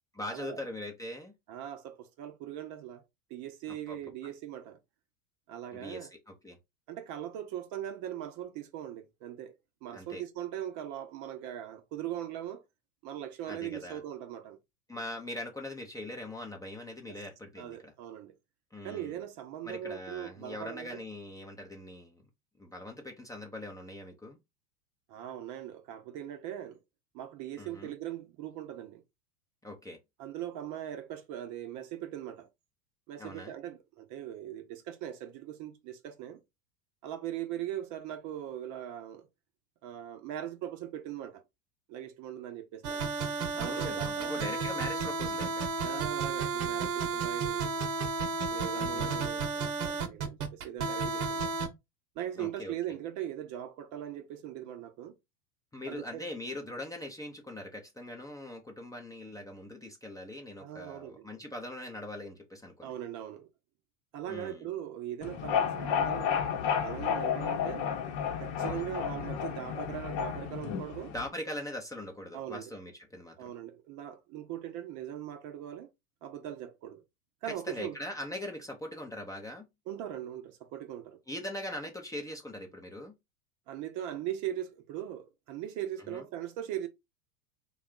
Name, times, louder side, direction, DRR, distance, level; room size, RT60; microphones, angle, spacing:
voice 1, 0.1-1.3 3.7-4.0 5.7-6.6 9.9-10.2 13.5-14.0 14.9-17.9 18.7-19.1 19.6-22.2 22.6-24.4 27.6-27.9 29.6-30.0 33.2-33.5 43.5-45.7 48.7-49.2 52.4-52.7 55.7-62.9 64.3-64.7 68.6-68.8 71.1-73.5 77.5-79.7 81.3-83.1 86.1-86.2, left 1 dB, 10° left, 0.7 m, -41 dB
voice 2, 1.5-3.0 3.3-4.8 5.5-6.1 6.9-9.6 9.8-12.6 13.0-14.6 17.1-17.2 17.6-18.3 18.8-21.0 25.1-26.8 27.1-29.0 30.2-32.5 33.1-36.4 37.0-39.3 39.8-41.4 41.9-43.1 43.5-44.4 45.8-47.7 48.5-51.5 52.1-55.2 55.9-56.3 60.6-61.3 62.8-63.5 64.1-66.4 66.8-67.8 68.4-71.1 72.3-72.7 73.4-75.9 76.2-77.0 77.4-78.0 79.9-81.2 83.7-86.9, right 11 dB, 40° right, 0.7 m, -40 dB
sound 1, 42.8-51.7, right 4 dB, 70° right, 0.9 m, -32 dB
sound 2, 65.2-71.3, left 8 dB, 50° left, 0.9 m, -32 dB
3.5 x 2.4 x 3.6 m
hypercardioid pair, 90°, 45 cm